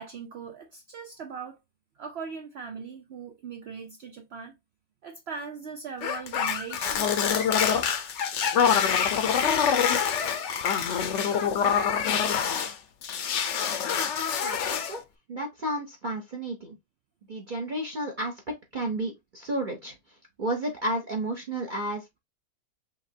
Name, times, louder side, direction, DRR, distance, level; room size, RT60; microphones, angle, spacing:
voice 1, 0.0-1.6 2.0-4.5 5.0-7.2, right 6 dB, 65° right, 0.6 m, -40 dB
sound 1, 6.0-12.7 13.0-15.0, left 7 dB, 60° left, 0.8 m, -25 dB
voice 2, 14.4-15.0 15.3-16.7 17.3-18.3 18.7-20.0 20.4-22.2, right 1 dB, 40° right, 0.8 m, -32 dB
5.8 x 2.9 x 2.7 m
omnidirectional pair, 1.7 m